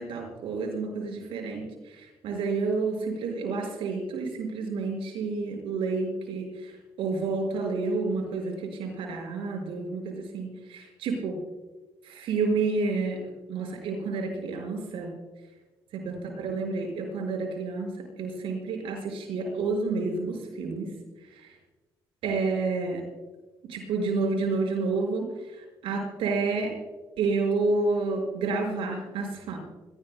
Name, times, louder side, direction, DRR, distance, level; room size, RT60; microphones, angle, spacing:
voice 1, 0.0-1.7 2.0-6.7 7.0-11.4 12.1-13.2 13.5-15.1 15.9-17.9 18.2-20.9 22.2-23.0 23.7-25.3 25.8-26.7 27.2-29.6, right 3 dB, 75° right, 2 dB, 5.3 m, -29 dB
26.0 x 17.5 x 2.2 m, 1.2 s
supercardioid pair, 65°, 10 cm